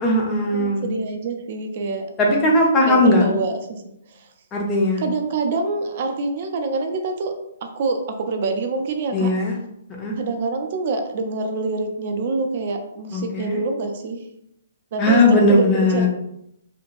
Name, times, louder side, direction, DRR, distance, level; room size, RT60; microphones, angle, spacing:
voice 1, 0.0-0.8 2.2-3.2 4.5-5.0 9.1-9.6 10.0-10.1 13.1-13.6 15.0-16.1, left 1 dB, 20° left, -1 dB, 0.8 m, -18 dB
voice 2, 0.5-2.5 2.9-3.8 4.1-4.3 5.0-7.3 7.6-9.3 10.2-14.2 14.9-16.1, right 3 dB, 45° right, 5 dB, 0.5 m, -26 dB
2.9 x 2.7 x 2.5 m, 0.78 s
figure-of-eight pair, 125°, 0 cm